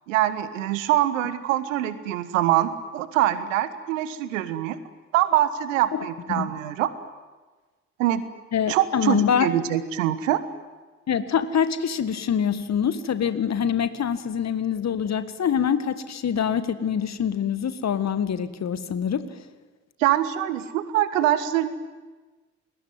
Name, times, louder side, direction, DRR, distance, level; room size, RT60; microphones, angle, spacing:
voice 1, 0.1-4.8 5.1-6.9 8.0-8.2 8.7-10.4 20.0-21.7, right 13 dB, 75° right, 14 dB, 1.4 m, -24 dB
voice 2, 5.9-6.5 8.5-9.5 11.1-19.4, left 8 dB, 40° left, 12 dB, 1.8 m, -25 dB
29.0 x 20.0 x 9.5 m, 1.3 s
figure-of-eight pair, 45°, 40 cm